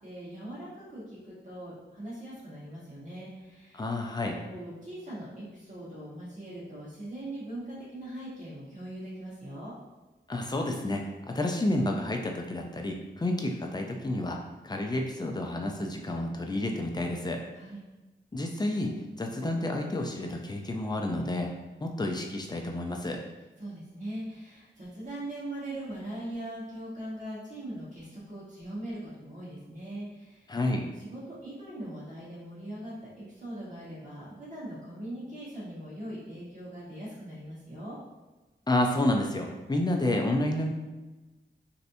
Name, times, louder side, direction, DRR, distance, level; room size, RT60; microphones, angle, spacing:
voice 1, 0.0-3.8 4.4-9.7 17.5-17.8 23.6-30.5 31.0-38.0, right 1 dB, 40° right, -9 dB, 1.4 m, -41 dB
voice 2, 3.7-4.4 10.3-14.4 14.6-17.4 18.3-21.5 21.8-23.2 30.5-30.9 38.7-40.7, left 1 dB, 20° left, 2 dB, 0.5 m, -30 dB
3.2 x 2.8 x 2.6 m, 1.1 s
wide cardioid pair, 70°, 19 cm